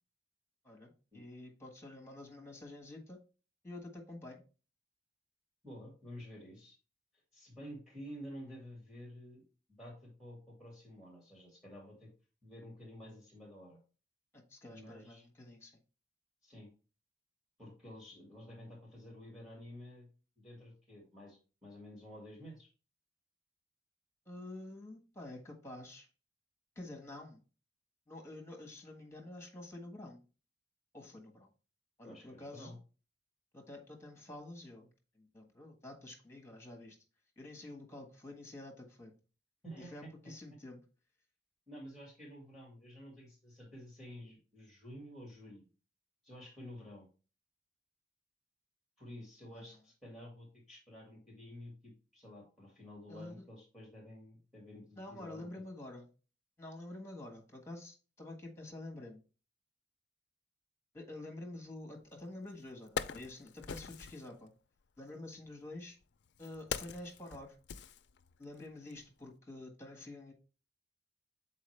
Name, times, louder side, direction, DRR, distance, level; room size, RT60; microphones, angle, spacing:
voice 1, 0.6-3.2 3.6-4.4 14.3-15.7 24.2-26.1 26.7-27.4 28.1-30.2 30.9-31.5 32.0-32.8 33.5-34.9 35.1-37.0 37.4-39.1 39.8-40.8 49.5-49.6 53.1-53.4 55.0-56.1 56.6-59.2 60.9-64.5 65.0-66.0 66.4-67.6 68.4-70.3, left 2 dB, 15° left, 1 dB, 1.5 m, -48 dB
voice 2, 5.6-6.7 7.3-9.4 9.7-12.1 12.4-13.8 14.7-15.2 16.4-16.7 17.6-20.1 20.4-22.7 32.0-32.8 39.6-40.1 41.7-45.7 46.2-47.1 49.0-55.6, equal, ahead, -1 dB, 2.2 m, -51 dB
Wood, 62.1-62.2 62.6-64.3 65.3-68.6 68.9-69.0, left 7 dB, 70° left, 0.4 m, -43 dB
7.0 x 4.3 x 3.3 m, 0.35 s
head